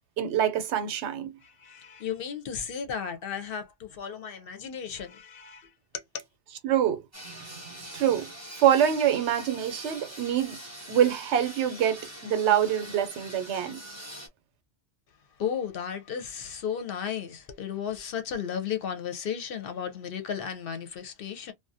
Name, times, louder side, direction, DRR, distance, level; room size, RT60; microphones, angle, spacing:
voice 1, 0.2-1.3 6.6-7.0 7.7-10.6 10.9-13.8, right 10 dB, 80° right, 0.9 m, -25 dB
voice 2, 1.4-6.2 15.4-21.5, left 8 dB, 65° left, 0.7 m, -34 dB
sound 1, 7.1-14.3, right 1 dB, 20° right, 0.6 m, -43 dB
2.4 x 2.1 x 2.6 m
omnidirectional pair, 1.1 m